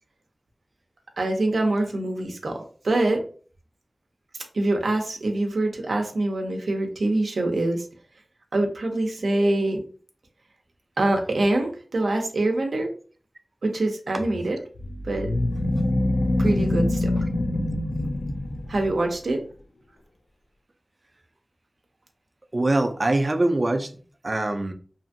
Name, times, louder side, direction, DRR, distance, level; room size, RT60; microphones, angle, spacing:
voice 1, 1.2-3.2 4.5-7.9 8.5-9.8 11.0-12.9 13.6-14.6 15.0-15.3 16.4-17.1 18.7-19.4, right 2 dB, 90° right, 3 dB, 0.6 m, -24 dB
sound 1, 14.7-19.1, left 1 dB, 80° left, 0.3 m, -25 dB
voice 2, 22.5-23.9 24.2-24.7, right 2 dB, 45° right, 7 dB, 0.4 m, -23 dB
2.7 x 2.5 x 2.5 m, 0.41 s
wide cardioid pair, 60°, 0 cm